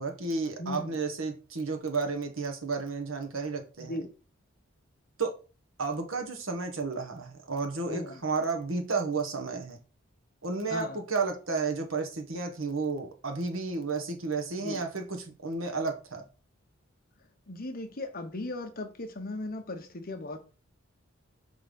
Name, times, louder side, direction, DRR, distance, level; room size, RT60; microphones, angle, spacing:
voice 1, 0.0-4.0 5.2-5.3 5.8-9.8 10.4-16.2, right 4 dB, 80° right, 1.5 m, -32 dB
voice 2, 0.6-1.0 3.8-4.1 7.9-8.2 10.7-11.0 14.6-14.8 17.5-20.4, left 2 dB, 45° left, 1.1 m, -37 dB
5.6 x 4.1 x 5.3 m
head